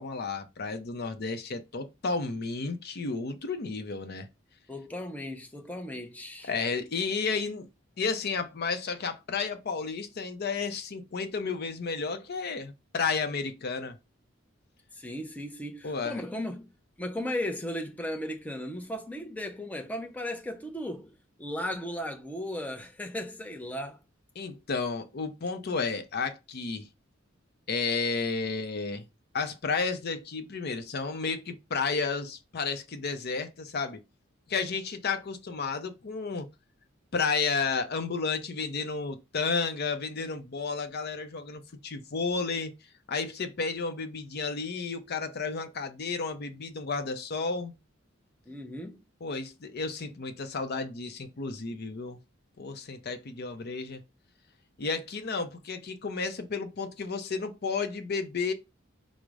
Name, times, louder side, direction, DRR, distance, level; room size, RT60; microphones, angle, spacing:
voice 1, 0.0-4.3 6.4-7.7 8.0-14.0 15.8-16.2 24.4-26.9 27.7-29.1 29.3-34.0 34.5-36.5 37.1-42.7 43.1-47.7 49.2-52.2 52.6-54.0 54.8-58.5, left 4 dB, 55° left, 0.6 m, -32 dB
voice 2, 4.7-6.5 14.9-16.7 17.0-21.1 21.4-24.0 48.5-49.0, left 1 dB, 10° left, 0.5 m, -36 dB
4.9 x 2.1 x 4.6 m
head